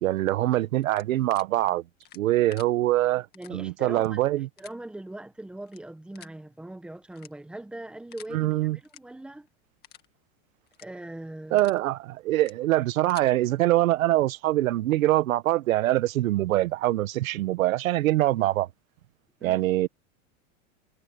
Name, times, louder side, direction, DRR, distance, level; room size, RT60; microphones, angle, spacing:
voice 1, 0.0-1.8 2.1-4.5 8.3-8.8 11.5-18.7 19.4-19.9, right 15 dB, 80° right, 1.2 m, -24 dB
sound 1, 0.8-1.4 2.0-2.7 3.3-3.5 3.9-4.1 4.6-4.7 5.6-5.8 6.1-6.4 7.1-7.6 8.1-8.3 8.8-9.0 9.4-9.5 9.8-10.1 10.7-10.9 11.3-11.8 12.3-12.5 12.9-13.3, left 12 dB, 25° left, 2.0 m, -49 dB
voice 2, 3.3-4.2 4.6-9.5 10.8-11.6 19.4-19.6, right 1 dB, ahead, 1.1 m, -40 dB
supercardioid pair, 165°, 40 cm